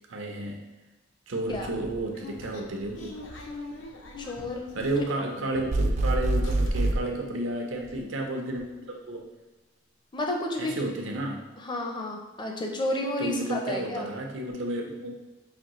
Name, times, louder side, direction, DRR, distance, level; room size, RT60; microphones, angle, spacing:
voice 1, 0.1-0.7 1.3-3.1 4.7-9.3 10.6-11.5 13.2-15.1, right 1 dB, 85° right, 2 dB, 0.7 m, -32 dB
sound 1, 1.5-6.0 6.2-7.1 7.5-7.6 7.8-8.0, left 2 dB, 70° left, 0.6 m, -44 dB
voice 2, 4.2-4.7 10.1-10.7 11.6-14.1, left 1 dB, 25° left, 1 dB, 0.5 m, -31 dB
sound 2, 5.7-7.0, right 1 dB, 40° right, 0.3 m, -24 dB
5.0 x 2.6 x 3.0 m, 1.1 s
head